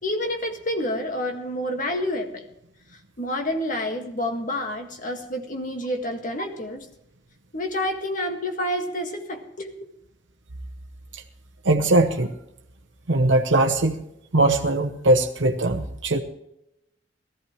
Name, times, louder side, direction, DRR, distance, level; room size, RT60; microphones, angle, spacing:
voice 1, 0.0-2.5 3.2-6.9 7.5-9.7, left 1 dB, 45° left, 4 dB, 1.9 m, -28 dB
voice 2, 11.6-12.3 13.1-14.0 14.3-16.2, right 2 dB, 85° right, 4 dB, 1.0 m, -20 dB
18.5 x 14.5 x 3.1 m, 0.83 s
head